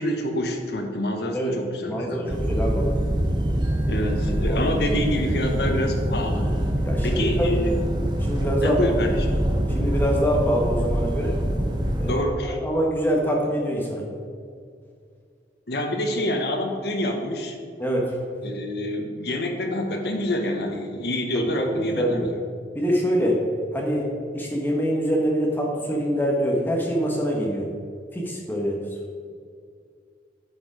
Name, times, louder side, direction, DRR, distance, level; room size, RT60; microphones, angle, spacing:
voice 1, 0.0-2.4 3.8-6.5 7.0-7.7 8.6-9.3 12.0-12.6 15.7-17.6 18.4-22.3, left 1 dB, 65° left, 3 dB, 1.1 m, -27 dB
voice 2, 1.9-2.9 4.5-4.6 6.8-7.5 8.2-8.8 9.7-11.4 12.0-14.0 17.8-18.2 21.3-22.3 22.7-23.4 23.7-27.7 28.1-28.8, equal, 10° left, -2 dB, 1.2 m, -25 dB
sound 1, 2.3-12.1, equal, 25° right, 0.7 m, -24 dB
10.0 x 5.0 x 4.9 m, 2.2 s
head